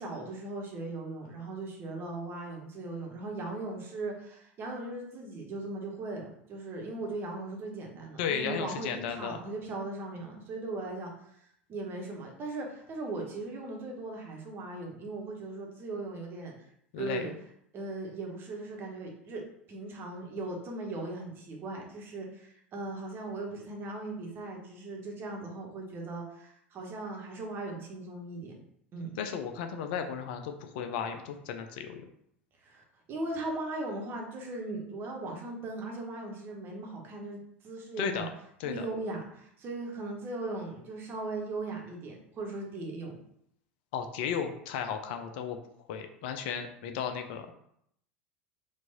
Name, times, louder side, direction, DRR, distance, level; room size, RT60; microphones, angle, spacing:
voice 1, 0.0-11.1 11.7-16.5 17.0-17.3 17.7-19.4 19.7-28.6 28.9-29.1 32.6-32.8 33.1-38.3 38.6-43.2, right 2 dB, 35° right, 0 dB, 1.2 m, -38 dB
voice 2, 8.2-9.4 16.9-17.2 29.2-32.1 38.0-38.3 38.6-38.9 43.9-45.6 45.9-47.5, left 7 dB, 55° left, 6 dB, 0.5 m, -34 dB
4.5 x 2.6 x 4.1 m, 0.72 s
figure-of-eight pair, 75°, 7 cm